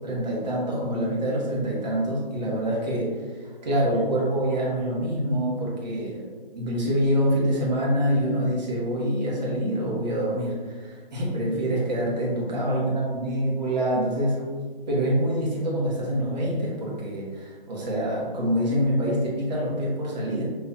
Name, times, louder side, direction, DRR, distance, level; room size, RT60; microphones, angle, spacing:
voice 1, 0.0-3.1 3.4-6.3 6.5-14.4 14.9-20.5, equal, 45° right, -5 dB, 1.3 m, -26 dB
5.7 x 3.0 x 2.4 m, 1.5 s
figure-of-eight pair, 140°, 29 cm